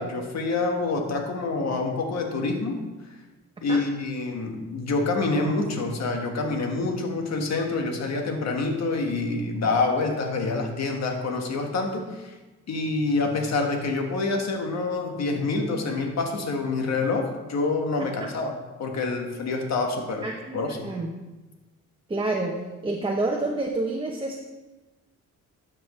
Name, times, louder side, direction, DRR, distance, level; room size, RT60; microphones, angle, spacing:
voice 1, 0.0-2.8 3.6-12.3 12.7-20.3 20.5-20.9, left 3 dB, 60° left, 3 dB, 1.6 m, -27 dB
voice 2, 20.2-21.1 22.1-22.5 22.8-24.4, right 2 dB, 15° right, 0 dB, 0.9 m, -28 dB
12.5 x 6.1 x 3.2 m, 1.2 s
cardioid pair, 90°, 30 cm